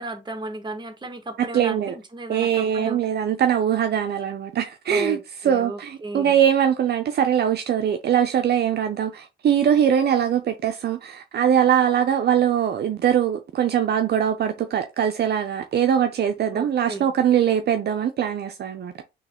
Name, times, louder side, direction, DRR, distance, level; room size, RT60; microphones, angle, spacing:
voice 1, 0.0-3.0 4.9-6.4 16.5-17.1, right 2 dB, 20° right, 1.4 m, -34 dB
voice 2, 1.4-1.9 2.3-5.2 5.4-19.0, right 9 dB, 55° right, 0.6 m, -22 dB
3.8 x 3.1 x 4.3 m
cardioid pair, 90°, 20 cm